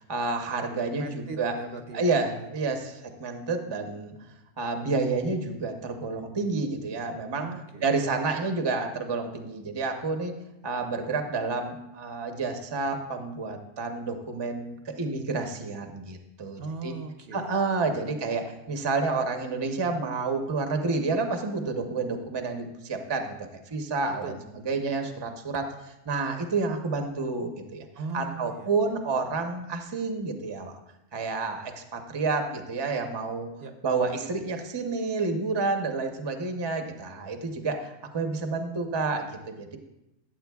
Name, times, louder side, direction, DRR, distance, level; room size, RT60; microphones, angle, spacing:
voice 1, 0.0-1.6 1.9-4.1 4.6-7.5 7.8-10.4 10.6-16.9 17.3-24.3 24.7-27.9 28.1-30.8 31.1-33.5 33.8-39.8, right 3 dB, 25° right, 5 dB, 0.6 m, -29 dB
voice 2, 1.0-2.8 7.3-7.9 8.2-8.3 16.6-18.2 24.2-24.7 27.9-28.9 33.6-33.7, right 3 dB, 60° right, 6 dB, 0.8 m, -40 dB
14.0 x 7.6 x 2.3 m, 0.89 s
omnidirectional pair, 1.2 m